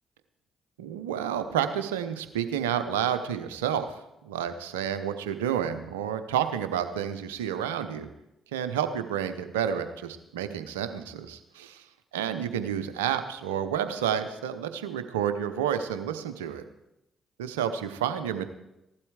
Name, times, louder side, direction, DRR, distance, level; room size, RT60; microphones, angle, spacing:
voice 1, 0.8-8.1 8.5-11.8 12.1-16.6 17.4-18.5, right 9 dB, 90° right, 10 dB, 0.8 m, -30 dB
15.5 x 12.0 x 4.8 m, 0.88 s
hypercardioid pair, 45°, 0 cm